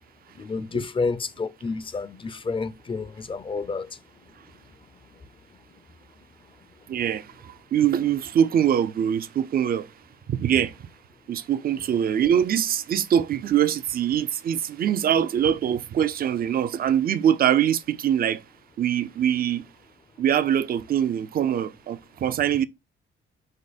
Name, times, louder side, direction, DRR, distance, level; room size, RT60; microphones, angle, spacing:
voice 1, 0.4-3.9, left 4 dB, 25° left, 0.5 m, -29 dB
voice 2, 6.9-9.9 10.3-10.8 11.3-18.4 18.8-19.6 20.2-22.6, right 9 dB, 50° right, 0.5 m, -23 dB
5.0 x 2.1 x 4.1 m
cardioid pair, 90°, 20 cm